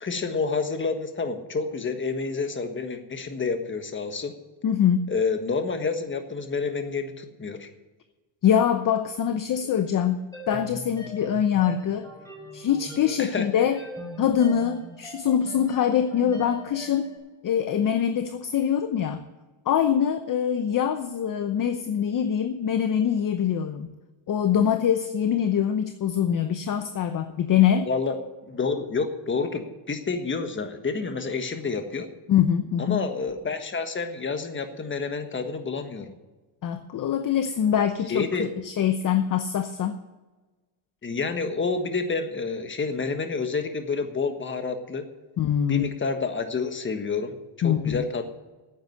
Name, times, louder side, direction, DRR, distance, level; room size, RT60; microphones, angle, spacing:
voice 1, 0.0-4.3 5.1-7.7 13.2-13.5 27.8-32.1 32.8-36.1 38.1-38.5 41.0-45.1 45.7-48.2, left 4 dB, 25° left, 7 dB, 1.5 m, -29 dB
voice 2, 4.6-5.1 8.4-10.2 10.5-12.1 12.5-13.8 14.2-17.1 17.4-19.2 19.7-23.9 24.3-27.9 32.3-33.0 36.6-40.0 45.4-45.9 47.6-48.0, left 9 dB, 40° left, 9 dB, 0.8 m, -24 dB
sound 1, 10.3-17.2, equal, 5° left, 5.1 m, -42 dB
9.8 x 8.7 x 9.4 m, 1.2 s
cardioid pair, 120°, 50 cm